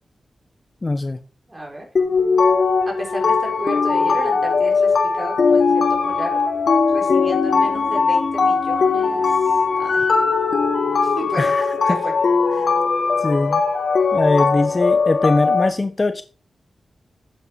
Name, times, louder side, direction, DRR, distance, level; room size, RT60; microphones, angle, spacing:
voice 1, 0.8-1.2 11.4-12.0 12.6-12.7 13.2-13.6 14.1-16.2, left 2 dB, 30° left, 10 dB, 0.8 m, -21 dB
voice 2, 1.5-1.9 2.9-6.4 6.9-10.1 11.0-11.5 11.9-12.1, right 1 dB, 25° right, 0 dB, 4.6 m, -33 dB
sound 1, 2.0-15.7, left 4 dB, 70° left, 1.5 m, -19 dB
9.4 x 8.4 x 4.8 m, 0.36 s
wide cardioid pair, 85°, 0 cm